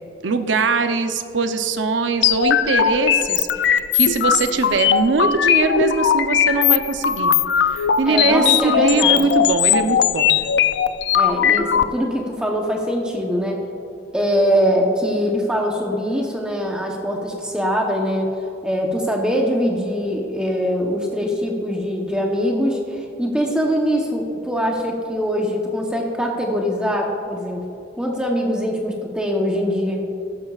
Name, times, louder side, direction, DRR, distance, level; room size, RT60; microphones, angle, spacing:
voice 1, 0.2-7.3 7.7-10.4, right 4 dB, 85° right, 8 dB, 0.7 m, -21 dB
sound 1, 2.2-11.8, left 9 dB, 75° left, 0.4 m, -18 dB
voice 2, 8.1-9.2 11.1-13.6 14.1-18.3 18.6-27.6 28.0-30.1, equal, 5° right, 0 dB, 0.9 m, -22 dB
14.0 x 11.5 x 2.4 m, 2.7 s
head